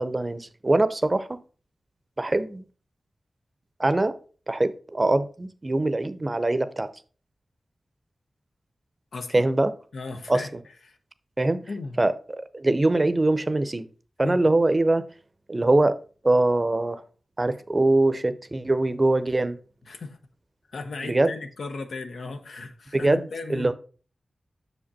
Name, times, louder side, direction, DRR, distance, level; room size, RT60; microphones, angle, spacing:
voice 1, 0.0-1.4 2.2-2.6 3.8-4.2 4.5-6.9 9.3-9.7 10.3-10.4 11.4-11.6 12.0-13.9 14.2-15.0 15.5-16.0 16.2-17.0 17.4-19.6 21.0-21.3 22.9-23.7, right 2 dB, 30° right, 0.6 m, -23 dB
voice 2, 9.1-9.4 9.9-10.5 10.9-11.0 11.7-12.0 14.2-14.4 19.9-20.2 20.7-23.7, left 3 dB, 90° left, 0.9 m, -36 dB
6.6 x 5.1 x 4.1 m
wide cardioid pair, 80°, 0 cm